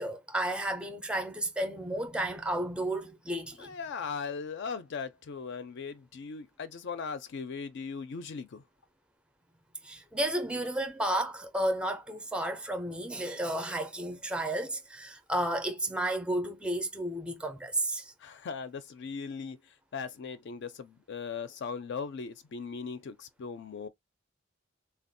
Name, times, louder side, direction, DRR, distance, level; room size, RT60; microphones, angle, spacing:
voice 1, 0.0-3.7 9.8-18.1, right 1 dB, 5° right, 0.4 m, -32 dB
voice 2, 3.6-8.6 18.2-23.9, left 5 dB, 60° left, 0.4 m, -39 dB
3.5 x 2.3 x 2.5 m
head